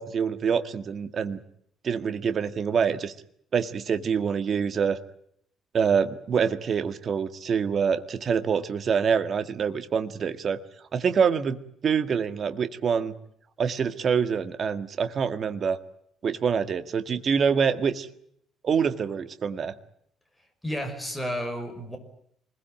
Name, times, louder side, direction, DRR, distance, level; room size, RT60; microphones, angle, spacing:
voice 1, 0.0-1.4 1.8-3.1 3.5-5.0 5.7-10.6 10.9-11.6 11.8-13.1 13.6-15.8 16.2-18.1 18.6-19.7, right 6 dB, 35° right, 10 dB, 1.8 m, -25 dB
voice 2, 20.6-22.0, equal, 5° left, 5 dB, 5.5 m, -31 dB
27.5 x 21.0 x 8.9 m, 0.71 s
cardioid pair, 155°, 0 cm